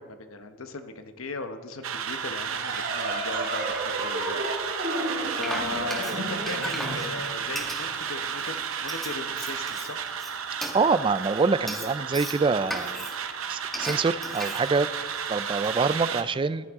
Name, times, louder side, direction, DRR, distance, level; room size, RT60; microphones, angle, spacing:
voice 1, 0.0-4.5 5.4-10.0, left 3 dB, 85° left, 8 dB, 1.0 m, -37 dB
sound 1, 1.8-16.2, right 7 dB, 80° right, 0.8 m, -33 dB
sound 2, 2.5-7.7, right 1 dB, 60° right, 2.9 m, -32 dB
Frying (food), 4.9-15.8, equal, ahead, 1.4 m, -38 dB
voice 2, 10.7-13.0 13.5-14.9 15.3-16.7, right 4 dB, 25° right, 16 dB, 0.3 m, -25 dB
14.5 x 11.5 x 3.6 m, 1.5 s
head